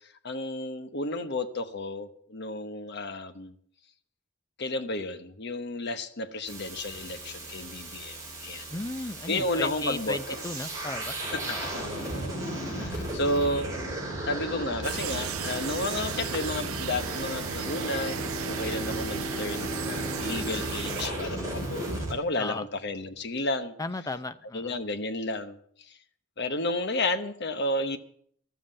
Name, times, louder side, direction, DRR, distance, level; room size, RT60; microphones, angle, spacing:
voice 1, 0.2-3.6 4.6-8.6 9.3-10.4 11.5-13.7 14.3-23.7 24.5-25.6 25.9-26.0 26.4-28.0, left 2 dB, 50° left, 10 dB, 1.0 m, -32 dB
sound 1, 6.5-22.2, right 1 dB, 15° right, 3.2 m, -35 dB
voice 2, 8.7-11.2 11.5-11.7 12.7-13.2 22.4-22.6 23.8-24.8, left 2 dB, 15° left, 12 dB, 0.5 m, -35 dB
sound 2, 14.8-21.1, right 10 dB, 75° right, 0.4 m, -37 dB
Bowed string instrument, 17.2-22.6, right 2 dB, 35° left, 7.3 m, -39 dB
13.0 x 7.6 x 9.0 m, 0.62 s
head